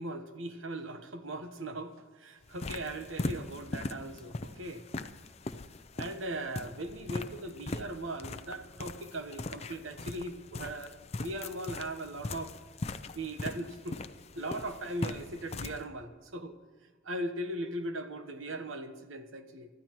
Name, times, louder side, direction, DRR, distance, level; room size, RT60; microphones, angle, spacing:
voice 1, 0.0-4.8 6.0-10.9 11.2-12.6 13.1-14.0 14.3-16.6 17.0-19.7, right 1 dB, 80° right, 8 dB, 1.1 m, -39 dB
sound 1, 2.4-15.8, left 2 dB, 30° left, 0.5 m, -40 dB
24.5 x 14.0 x 3.0 m, 1.4 s
head